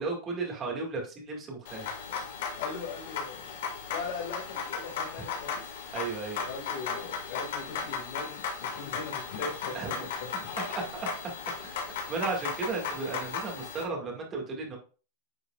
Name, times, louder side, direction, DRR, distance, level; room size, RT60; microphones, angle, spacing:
voice 1, 0.0-1.9 5.9-6.4 9.7-9.9 10.7-11.1 11.6-11.8 12.1-14.8, right 4 dB, 20° right, 0 dB, 2.0 m, -34 dB
sound 1, 1.6-13.8, left 6 dB, 75° left, 2.1 m, -36 dB
voice 2, 2.6-3.4 3.9-5.7 6.4-10.3, left 4 dB, 60° left, -3 dB, 2.1 m, -40 dB
9.7 x 4.9 x 2.4 m, 0.36 s
supercardioid pair, 165°, 0 cm